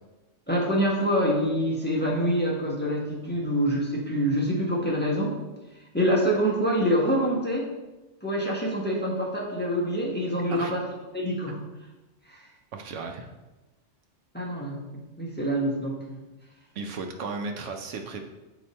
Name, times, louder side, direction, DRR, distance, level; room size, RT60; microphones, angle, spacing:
voice 1, 0.5-5.4 5.9-7.7 8.2-10.8 11.1-11.6 12.3-12.4 14.3-16.0, equal, 10° left, -4 dB, 1.0 m, -26 dB
voice 2, 12.7-13.3 16.7-18.3, right 4 dB, 75° right, 4 dB, 1.0 m, -35 dB
8.2 x 3.0 x 4.2 m, 1.1 s
omnidirectional pair, 1.3 m